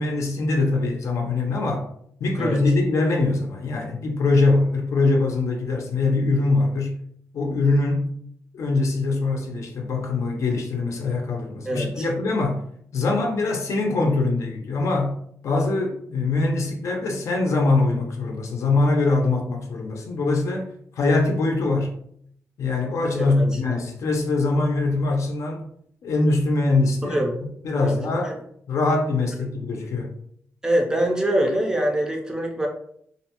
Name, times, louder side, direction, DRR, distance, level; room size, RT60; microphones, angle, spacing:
voice 1, 0.0-1.9 2.2-7.0 7.3-8.1 8.5-12.6 12.9-15.2 15.4-20.7 21.0-22.0 22.6-25.6 26.0-28.3 28.7-30.1, left 3 dB, 65° left, 2 dB, 0.5 m, -23 dB
voice 2, 11.7-12.1 23.2-23.4 27.0-27.3 27.8-28.0 28.2-28.4 30.6-32.7, right 1 dB, 10° right, 1 dB, 0.4 m, -24 dB
2.5 x 2.1 x 2.8 m, 0.67 s
wide cardioid pair, 160°, 5 cm